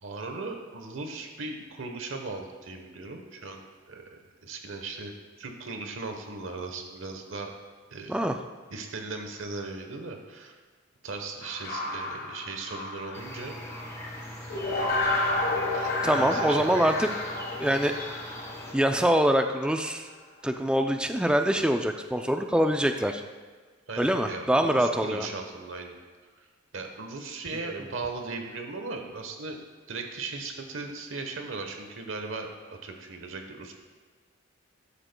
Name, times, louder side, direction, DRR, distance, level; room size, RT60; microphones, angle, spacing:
voice 1, 0.0-5.1 5.4-7.5 7.9-8.2 8.7-10.6 11.0-13.6 15.7-16.9 23.9-26.0 26.7-29.6 29.9-33.7, right 3 dB, 70° right, 4 dB, 1.1 m, -38 dB
sound 1, 11.4-14.1 14.5-19.6, left 2 dB, 50° left, 1.4 m, -31 dB
sound 2, 13.1-18.7, left 1 dB, 15° left, 1.0 m, -40 dB
voice 2, 16.0-17.1 17.6-17.9 18.7-20.1 20.4-23.2 24.0-25.3 27.7-27.9, equal, 5° right, 6 dB, 0.4 m, -24 dB
12.0 x 9.9 x 2.2 m, 1.4 s
head